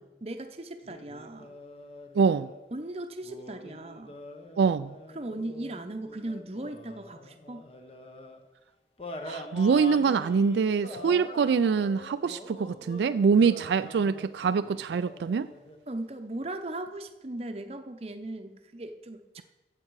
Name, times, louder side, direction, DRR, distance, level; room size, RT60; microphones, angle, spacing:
voice 1, 0.2-1.5 2.7-4.2 5.1-7.7 15.9-19.4, right 1 dB, 35° right, 0.7 m, -38 dB
sound 1, 0.8-2.6 3.2-8.4 9.0-15.8, left 2 dB, 35° left, 1.0 m, -44 dB
voice 2, 2.2-2.5 4.6-4.9 9.2-15.5, right 5 dB, 80° right, 0.3 m, -24 dB
14.5 x 7.7 x 4.7 m
head